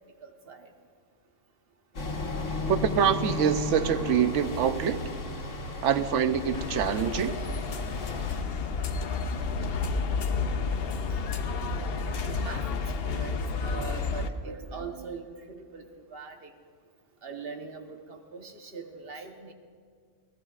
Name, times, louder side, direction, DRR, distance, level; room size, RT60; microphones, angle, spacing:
voice 1, 0.2-0.7 10.3-10.6 11.4-16.5 17.2-19.5, right 4 dB, 50° right, 4 dB, 1.4 m, -42 dB
sound 1, 1.9-8.4, left 2 dB, 90° left, 1.9 m, -34 dB
voice 2, 2.7-5.0 5.8-7.3, right 8 dB, 75° right, 10 dB, 1.0 m, -25 dB
sound 2, 6.5-14.3, left 4 dB, 55° left, 0.9 m, -31 dB
26.5 x 17.5 x 2.5 m, 2.1 s
omnidirectional pair, 1.3 m